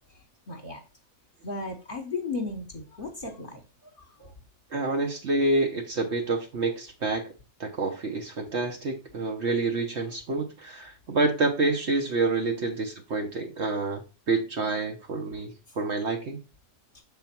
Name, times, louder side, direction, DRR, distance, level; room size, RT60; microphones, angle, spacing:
voice 1, 0.5-0.8 1.4-3.9 4.2-4.3, left 3 dB, 40° left, 1 dB, 1.3 m, -35 dB
voice 2, 4.7-7.3 7.6-14.0 14.3-16.4, right 3 dB, 55° right, 2 dB, 1.1 m, -28 dB
6.4 x 3.9 x 4.3 m, 0.30 s
omnidirectional pair, 1.5 m